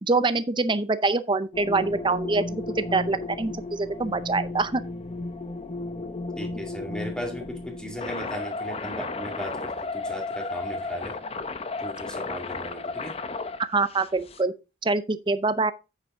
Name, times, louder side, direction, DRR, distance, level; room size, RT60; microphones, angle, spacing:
voice 1, 0.0-4.8 13.7-14.5 14.8-15.7, right 3 dB, 25° right, 0.6 m, -25 dB
sound 1, 1.5-14.4, left 3 dB, 30° left, 0.7 m, -34 dB
voice 2, 6.4-11.2 11.8-13.2, equal, 5° left, 2.2 m, -37 dB
8.6 x 7.4 x 3.7 m
head